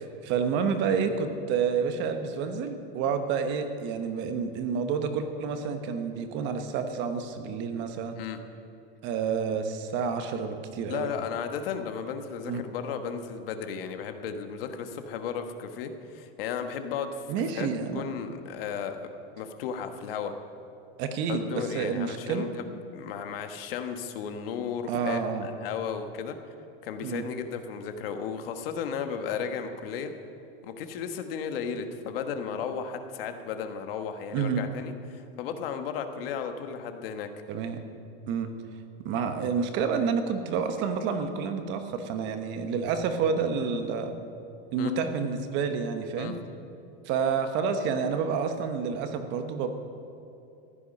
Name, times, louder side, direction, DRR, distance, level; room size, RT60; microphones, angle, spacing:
voice 1, 0.0-8.2 9.0-11.1 12.5-12.6 17.3-18.0 21.0-22.5 24.9-25.5 27.0-27.2 34.3-34.6 37.5-37.8 38.3-38.5 39.0-44.1 44.7-46.3 47.0-49.7, right 6 dB, 40° right, 7 dB, 1.1 m, -29 dB
voice 2, 10.9-17.3 17.5-19.1 19.4-20.3 21.3-26.4 26.8-30.1 30.6-37.3 44.8-44.9 46.2-46.3, left 7 dB, 70° left, 7 dB, 1.3 m, -34 dB
15.0 x 11.0 x 5.4 m, 2.7 s
supercardioid pair, 160°, 30 cm